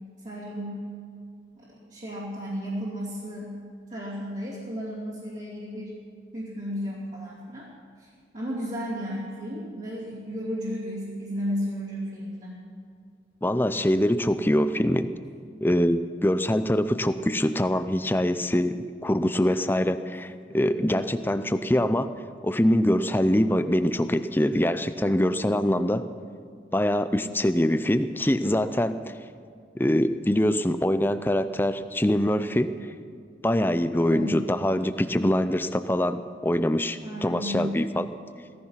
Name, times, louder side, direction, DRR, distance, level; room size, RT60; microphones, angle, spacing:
voice 1, 0.2-0.8 1.6-3.5 3.9-6.0 6.3-7.7 8.0-8.1 8.3-12.6 34.0-34.4 37.0-37.8, equal, 40° right, -8 dB, 3.0 m, -33 dB
voice 2, 13.4-15.1 15.6-22.1 22.4-26.1 26.7-29.1 29.7-32.7 33.4-38.1, left 1 dB, 10° left, 11 dB, 0.5 m, -24 dB
17.0 x 15.0 x 5.8 m, 2.3 s
head